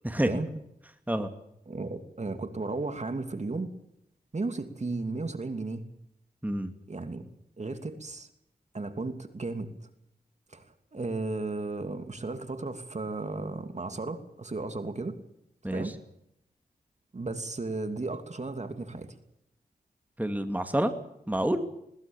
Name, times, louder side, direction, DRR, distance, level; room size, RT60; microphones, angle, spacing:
voice 1, 1.7-3.7 4.3-5.8 6.9-7.2 7.6-8.3 8.7-9.7 10.5-10.7 10.9-15.2 15.7-15.9 17.1-19.1, right 3 dB, 45° right, 8 dB, 2.8 m, -34 dB
voice 2, 20.2-20.9 21.3-21.6, right 1 dB, 10° right, 7 dB, 2.6 m, -28 dB
21.5 x 20.0 x 7.2 m, 0.77 s
cardioid pair, 60°, 16 cm